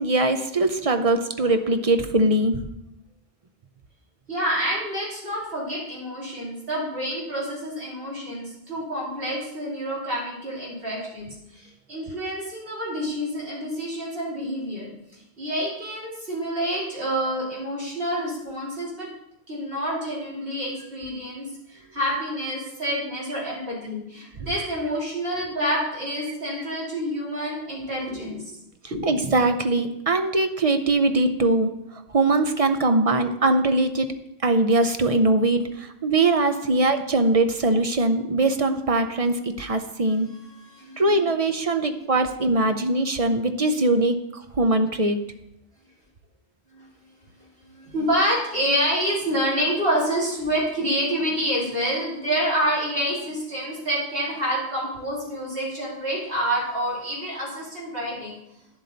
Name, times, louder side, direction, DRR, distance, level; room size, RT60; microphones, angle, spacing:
voice 1, 0.0-2.6 11.0-11.1 29.0-34.1 34.4-40.3 41.0-45.2, right 2 dB, 40° right, 8 dB, 0.6 m, -22 dB
voice 2, 4.3-14.9 15.4-19.1 19.5-28.5 28.9-29.1 40.6-41.1 46.7-46.8 47.7-58.3, equal, 65° right, -6 dB, 3.5 m, -28 dB
10.5 x 7.6 x 4.0 m, 0.83 s
omnidirectional pair, 1.0 m